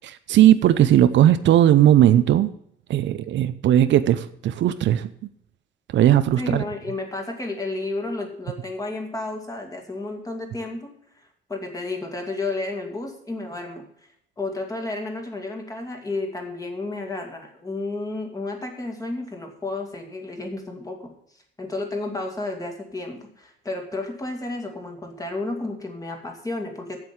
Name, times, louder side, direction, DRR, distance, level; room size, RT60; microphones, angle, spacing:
voice 1, 0.0-2.5 2.9-5.1 5.9-6.6, right 11 dB, 70° right, 12 dB, 0.7 m, -17 dB
voice 2, 6.4-10.9 11.5-13.8 14.4-21.0 21.6-27.0, left 2 dB, 15° left, 3 dB, 2.2 m, -31 dB
7.9 x 7.6 x 8.5 m, 0.71 s
cardioid pair, 140°, 20 cm